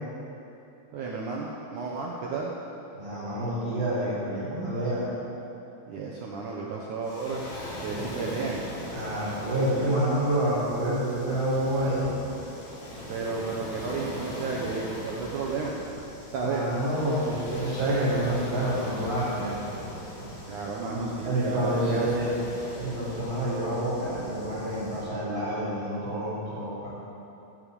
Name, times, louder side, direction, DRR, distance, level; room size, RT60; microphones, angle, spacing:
voice 1, 0.9-2.6 5.9-7.4 7.8-8.6 13.1-15.8 16.3-16.8 20.5-22.3, right 4 dB, 70° right, -3 dB, 2.0 m, -32 dB
voice 2, 2.9-5.1 7.9-8.2 8.9-12.1 16.4-19.6 20.8-22.3 22.8-26.9, right 1 dB, 55° right, -12 dB, 5.3 m, -28 dB
Waves surf, 7.0-25.1, left 1 dB, 65° left, 4.3 m, -40 dB
15.0 x 6.9 x 8.4 m, 2.9 s
omnidirectional pair, 4.8 m